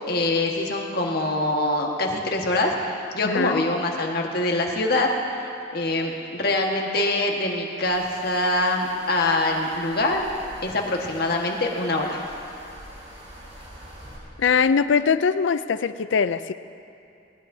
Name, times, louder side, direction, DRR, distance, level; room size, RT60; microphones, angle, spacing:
voice 1, 0.1-5.1 5.4-10.3 10.6-12.2, left 2 dB, 50° left, 0 dB, 1.5 m, -24 dB
voice 2, 3.2-3.6 14.4-16.5, left 6 dB, 70° left, 13 dB, 0.4 m, -21 dB
sound 1, 7.8-14.2, right 1 dB, 35° right, 4.2 m, -45 dB
20.0 x 19.0 x 2.7 m, 2.6 s
head